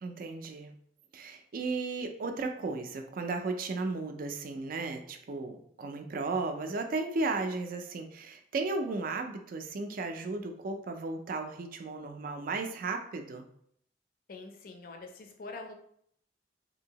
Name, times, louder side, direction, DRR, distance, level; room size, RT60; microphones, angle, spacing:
voice 1, 0.0-0.7 1.1-13.4, right 3 dB, 50° right, 5 dB, 0.4 m, -35 dB
voice 2, 14.3-15.7, left 3 dB, 50° left, 4 dB, 0.4 m, -44 dB
2.7 x 2.7 x 2.8 m, 0.67 s
head